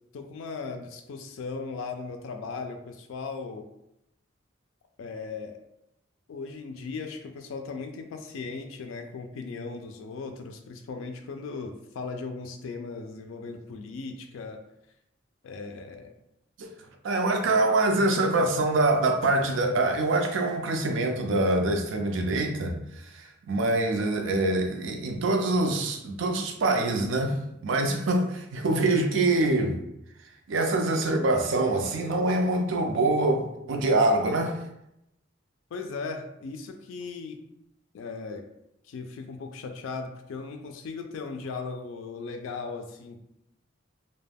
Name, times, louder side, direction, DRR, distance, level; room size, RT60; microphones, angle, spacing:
voice 1, 0.1-3.7 5.0-5.6 6.3-14.6 15.4-16.1 35.7-37.4 37.9-38.4 38.9-43.2, left 4 dB, 85° left, 0.3 m, -37 dB
voice 2, 17.0-27.4 27.6-29.8 30.5-34.6, right 2 dB, 70° right, 0.4 m, -25 dB
2.2 x 2.1 x 3.3 m
head